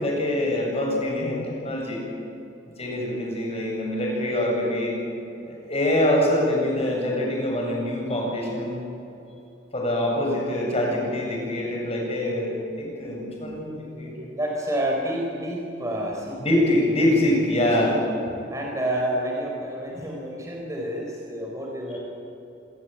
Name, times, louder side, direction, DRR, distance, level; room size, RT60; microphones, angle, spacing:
voice 1, 0.0-2.0 2.8-4.9 5.4-8.8 9.7-14.3 16.4-18.0, left 1 dB, 35° left, -1 dB, 7.8 m, -24 dB
voice 2, 14.3-16.4 17.5-17.9 18.5-22.0, right 1 dB, 15° right, -1 dB, 4.2 m, -29 dB
26.5 x 20.5 x 8.6 m, 2.9 s
head